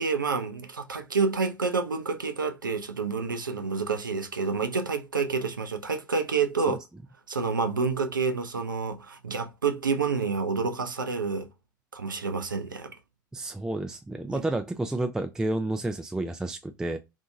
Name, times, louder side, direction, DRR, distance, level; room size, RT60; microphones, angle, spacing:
voice 1, 0.0-6.8 7.3-11.5 11.9-12.9 14.3-14.4, right 4 dB, 90° right, 0.4 m, -28 dB
voice 2, 13.3-17.0, right 2 dB, 5° right, 0.3 m, -30 dB
2.7 x 2.6 x 2.5 m
figure-of-eight pair, 75°, 10 cm